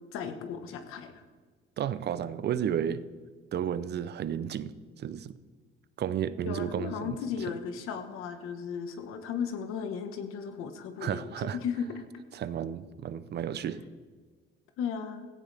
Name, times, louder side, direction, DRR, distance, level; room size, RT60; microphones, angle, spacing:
voice 1, 0.1-1.2 6.4-12.0 14.8-15.3, left 7 dB, 80° left, 7 dB, 1.5 m, -35 dB
voice 2, 1.8-3.0 3.5-4.7 5.0-5.4 6.0-7.2 11.0-11.6 12.3-13.8, right 9 dB, 55° right, 14 dB, 0.7 m, -32 dB
16.5 x 15.0 x 3.5 m, 1.5 s
cardioid pair, 110°, 21 cm